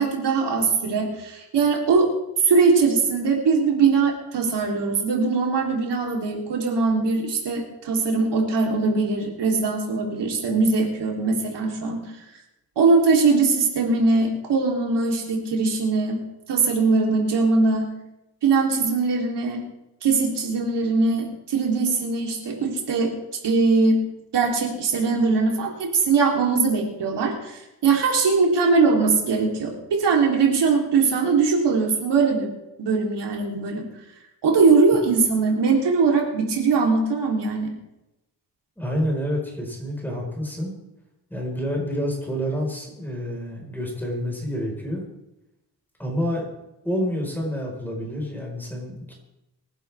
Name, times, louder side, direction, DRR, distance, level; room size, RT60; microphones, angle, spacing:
voice 1, 0.0-2.1 2.4-12.1 12.8-16.2 16.5-17.9 18.4-19.6 20.0-23.1 23.4-24.0 24.3-32.5 32.8-33.9 34.4-37.7, right 4 dB, 85° right, -1 dB, 3.7 m, -21 dB
voice 2, 38.8-40.7 41.3-45.0 46.0-46.4 46.8-49.1, equal, 5° left, -2 dB, 4.9 m, -28 dB
24.5 x 11.5 x 3.6 m, 0.93 s
wide cardioid pair, 150°, 40 cm